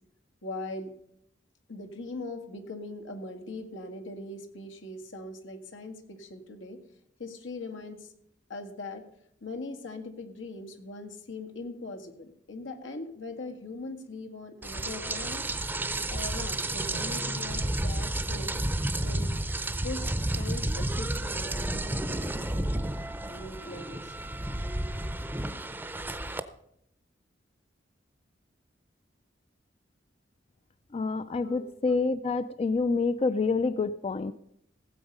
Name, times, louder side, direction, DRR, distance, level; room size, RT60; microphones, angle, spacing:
voice 1, 0.4-0.9 1.7-6.8 7.2-8.1 8.5-9.0 9.4-15.4 16.1-18.6 19.0-19.3 19.8-23.0 23.3-24.1 31.4-31.9, left 2 dB, 90° left, 6 dB, 1.8 m, -41 dB
Rain, 14.6-26.4, right 1 dB, 10° right, 0.6 m, -31 dB
voice 2, 30.9-34.3, left 4 dB, 30° left, 13 dB, 0.4 m, -27 dB
17.0 x 7.9 x 5.4 m, 0.73 s
head